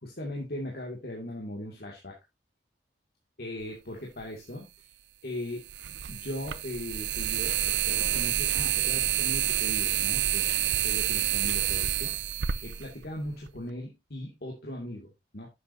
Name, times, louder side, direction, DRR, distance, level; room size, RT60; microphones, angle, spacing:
voice 1, 0.0-2.2 3.4-4.9 5.2-5.7 6.1-10.5 10.8-12.2 12.6-15.5, left 1 dB, 60° left, -1 dB, 2.4 m, -39 dB
sound 1, 4.2-4.3 5.7-13.6, right 12 dB, 75° right, 0.7 m, -28 dB
11.5 x 7.8 x 2.7 m, 0.21 s
head